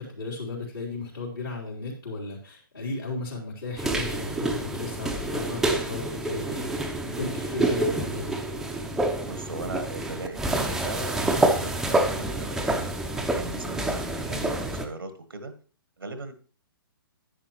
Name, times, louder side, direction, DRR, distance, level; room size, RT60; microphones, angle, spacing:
voice 1, 0.0-8.4, left 3 dB, 65° left, -6 dB, 3.5 m, -35 dB
sound 1, 3.8-14.9, right 2 dB, 5° right, 0.7 m, -28 dB
voice 2, 9.3-12.9 13.3-15.5 16.0-16.3, right 3 dB, 75° right, 9 dB, 1.3 m, -38 dB
10.0 x 9.6 x 3.1 m, 0.40 s
figure-of-eight pair, 125°, 12 cm